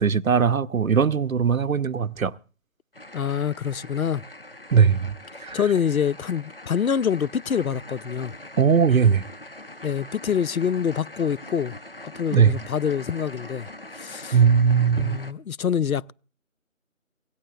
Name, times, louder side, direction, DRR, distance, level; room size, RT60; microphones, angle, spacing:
voice 1, 0.0-2.3 4.7-5.2 5.4-5.6 8.6-9.3 12.3-12.5 14.3-15.2, right 6 dB, 80° right, 0.7 m, -19 dB
sound 1, 2.9-15.3, left 1 dB, 45° left, 0.7 m, -42 dB
voice 2, 3.1-4.2 5.3-8.3 9.8-11.8 12.2-14.4 15.0-16.1, left 7 dB, 85° left, 0.6 m, -26 dB
25.0 x 17.0 x 2.3 m
figure-of-eight pair, 170°, 41 cm